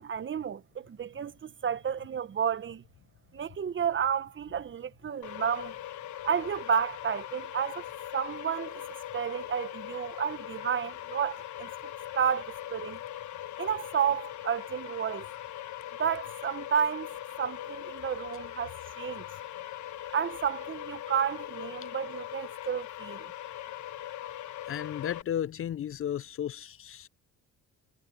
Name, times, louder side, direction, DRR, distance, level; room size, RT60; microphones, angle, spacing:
voice 1, 0.0-2.8 3.3-5.7 6.2-7.9 8.1-8.8 9.1-11.7 12.1-13.0 13.6-15.3 16.0-19.2 20.1-23.3, right 7 dB, 40° right, 0.9 m, -31 dB
sound 1, 5.2-25.2, left 13 dB, 70° left, 1.2 m, -41 dB
voice 2, 24.7-27.1, left 10 dB, 45° left, 0.5 m, -34 dB
cardioid pair, 90°, 30 cm